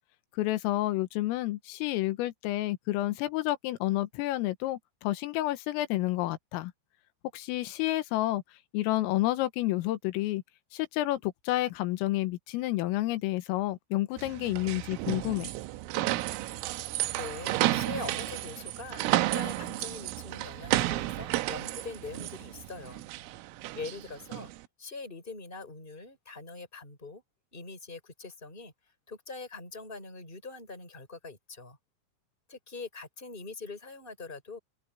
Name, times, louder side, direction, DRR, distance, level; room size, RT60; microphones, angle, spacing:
voice 1, 0.4-6.7 7.3-8.4 8.7-10.4 10.7-15.5, left 16 dB, 85° left, 3.8 m, -30 dB
sound 1, 14.2-24.6, right 17 dB, 85° right, 3.5 m, -32 dB
voice 2, 17.1-23.0 23.7-24.5 24.8-27.2 27.5-28.7 29.1-31.8 32.5-34.6, left 3 dB, 10° left, 6.3 m, -43 dB
omnidirectional pair, 5.8 m